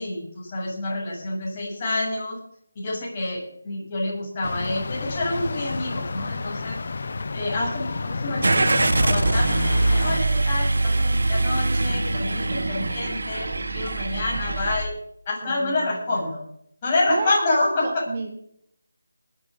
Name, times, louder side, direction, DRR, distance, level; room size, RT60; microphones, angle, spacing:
voice 1, 0.0-2.4 2.7-6.8 7.3-14.9 15.3-16.4 16.8-18.0, left 2 dB, 25° left, -5 dB, 7.7 m, -28 dB
sound 1, 4.4-10.2, left 3 dB, 50° left, 0.8 m, -30 dB
Car / Engine starting, 8.4-14.8, right 2 dB, 70° right, 1.7 m, -23 dB
voice 2, 15.4-16.3 17.1-17.4 17.8-18.3, right 4 dB, 30° right, 2 dB, 1.7 m, -32 dB
20.5 x 8.7 x 5.2 m, 0.69 s
figure-of-eight pair, 170°, 0 cm